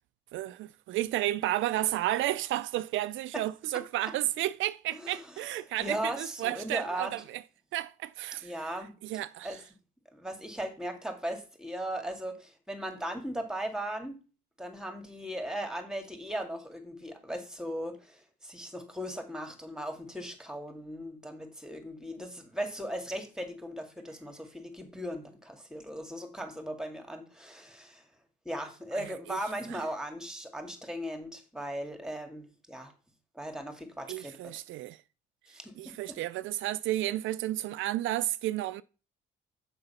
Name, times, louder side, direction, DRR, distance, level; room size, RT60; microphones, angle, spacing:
voice 1, 0.3-7.4 7.7-8.7 9.0-9.6 28.9-29.4 29.7-29.8 34.1-35.0 35.8-38.8, right 15 dB, 80° right, 0.4 m, -32 dB
voice 2, 4.9-5.4 5.8-7.2 8.4-9.0 9.4-9.6 10.1-14.2 14.6-28.1 28.5-32.9 33.3-34.6 35.5-36.2, right 1 dB, 5° right, 1.9 m, -38 dB
6.7 x 5.0 x 5.6 m
cardioid pair, 90°, 20 cm